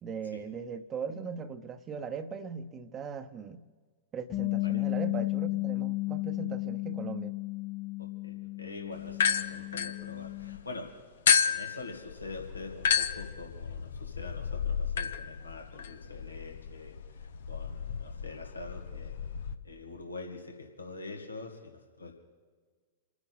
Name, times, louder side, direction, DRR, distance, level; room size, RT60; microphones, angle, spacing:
voice 1, 0.0-3.6 4.1-7.4, right 6 dB, 25° right, 1.0 m, -39 dB
Bass guitar, 4.3-10.6, left 21 dB, 40° left, 2.3 m, -33 dB
voice 2, 8.0-11.0 11.4-19.1 19.6-22.1, left 3 dB, 85° left, 2.3 m, -45 dB
sound 1, 9.1-10.6 11.3-19.6, left 7 dB, 65° left, 0.9 m, -31 dB
28.5 x 9.6 x 4.2 m
figure-of-eight pair, 100°, 0 cm